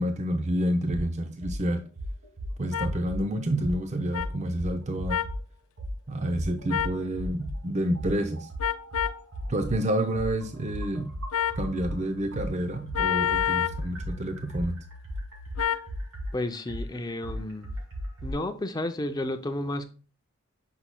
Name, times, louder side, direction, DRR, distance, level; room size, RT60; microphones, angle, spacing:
voice 1, 0.0-1.8 2.6-5.2 6.1-8.5 9.5-11.1 11.6-14.8, right 1 dB, 35° right, 7 dB, 0.5 m, -29 dB
sound 1, 0.9-1.0 1.4-1.6 2.0-3.2 3.6-3.8 4.1-5.4 5.8-6.0 6.3-7.6 8.0-12.0 12.3-18.3, equal, 70° right, 2.5 m, -35 dB
sound 2, 2.7-2.9 4.1-4.3 5.1-5.3 6.7-7.0 8.6-9.2 11.3-11.6 12.9-13.8 15.6-15.9, left 9 dB, 80° left, 0.4 m, -27 dB
sound 3, 10.5-15.6, left 3 dB, 50° right, 1.6 m, -48 dB
voice 2, 16.3-17.7 18.2-19.9, left 1 dB, 20° left, 8 dB, 0.5 m, -32 dB
7.9 x 5.5 x 2.2 m, 0.35 s
head